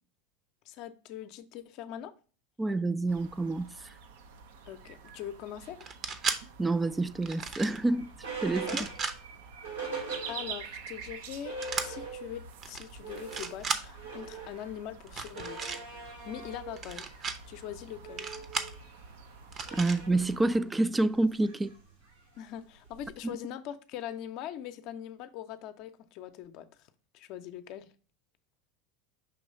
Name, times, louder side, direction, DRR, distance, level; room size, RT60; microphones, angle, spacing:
voice 1, 0.6-2.1 4.7-5.9 8.7-8.9 10.3-15.8 16.2-17.1 17.5-18.3 22.3-26.9 27.1-27.9, left 11 dB, 55° left, 0.6 m, -42 dB
voice 2, 2.6-3.8 6.6-8.1 8.4-8.9 19.7-21.7 23.2-23.4, right 2 dB, 15° right, 0.4 m, -28 dB
sound 1, 3.1-20.6, right 5 dB, 70° right, 0.6 m, -48 dB
sound 2, 5.8-6.4 7.2-7.8 8.6-9.1 11.6-11.9 12.6-12.8 13.2-13.8 15.1-15.8 16.8-17.4 18.2-18.7 19.5-20.0, right 5 dB, 35° right, 0.8 m, -35 dB
sound 3, 7.2-10.8 11.2-11.3 11.4-12.5 12.8-23.3, right 4 dB, 90° right, 2.6 m, -43 dB
5.7 x 3.1 x 5.3 m
hypercardioid pair, 90°, 0 cm